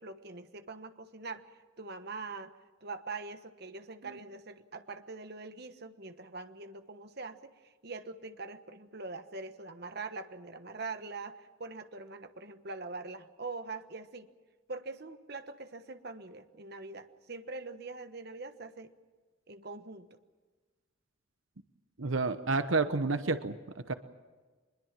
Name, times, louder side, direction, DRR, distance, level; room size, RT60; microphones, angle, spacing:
voice 1, 0.0-1.4 1.8-2.5 2.8-14.3 14.7-18.9 19.5-20.2, right 3 dB, 55° right, 8 dB, 1.2 m, -43 dB
voice 2, 22.0-23.6 23.9-24.0, right 3 dB, 80° right, 10 dB, 1.0 m, -29 dB
24.0 x 21.5 x 7.5 m, 1.4 s
head